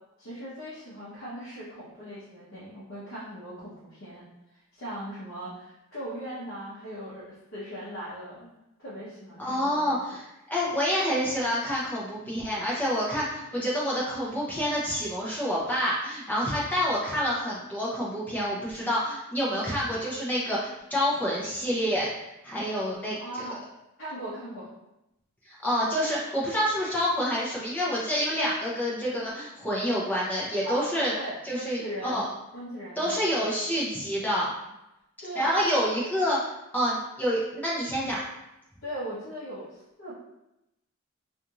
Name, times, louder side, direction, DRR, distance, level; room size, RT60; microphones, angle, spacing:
voice 1, 0.2-4.3 4.7-8.5 8.8-10.0 23.2-23.6 24.0-24.7 30.6-32.3 32.5-33.6 35.2-35.6 38.8-40.1, right 1 dB, 65° left, -9 dB, 0.8 m, -39 dB
voice 2, 9.4-23.2 25.4-31.1 31.4-32.3 33.0-34.5 35.3-36.4 36.7-38.3, equal, 10° left, -6 dB, 0.6 m, -28 dB
2.6 x 2.4 x 2.9 m, 0.90 s
head